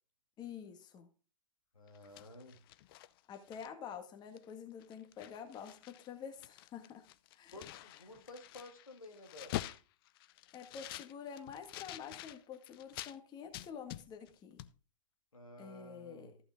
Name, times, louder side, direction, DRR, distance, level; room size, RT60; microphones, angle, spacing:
voice 1, 0.4-1.1 3.3-7.1 7.3-7.7 10.5-14.6 15.6-16.4, left 7 dB, 25° left, 1.9 m, -48 dB
voice 2, 1.7-2.6 7.5-9.6 15.3-16.3, left 1 dB, 85° left, 2.3 m, -52 dB
sound 1, 1.9-3.9 4.4-4.5 4.8-6.1 6.3-13.2 13.5-14.3 14.6-14.7, left 15 dB, 45° left, 0.7 m, -47 dB
14.0 x 6.0 x 3.9 m
figure-of-eight pair, 115°, 17 cm